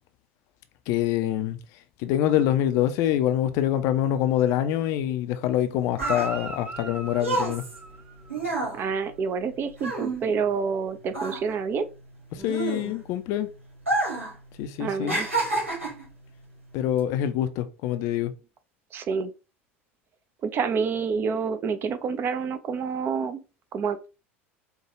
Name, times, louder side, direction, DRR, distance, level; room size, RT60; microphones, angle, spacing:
voice 1, 0.9-1.6 2.0-7.6 12.3-13.5 14.6-15.2 16.7-18.3, left 11 dB, 50° left, 0.4 m, -25 dB
sound 1, 5.5-10.8 11.1-13.2 13.8-14.4 14.6-16.1 16.8-17.0, right 2 dB, 80° right, 1.6 m, -29 dB
Guitar, 5.9-8.5 12.4-12.5, right 2 dB, 20° right, 0.9 m, -36 dB
voice 2, 8.7-11.9 14.8-15.3 18.9-19.3 20.4-23.4 23.7-24.1, right 5 dB, 35° right, 0.5 m, -28 dB
4.5 x 2.3 x 2.9 m
figure-of-eight pair, 75°, 7 cm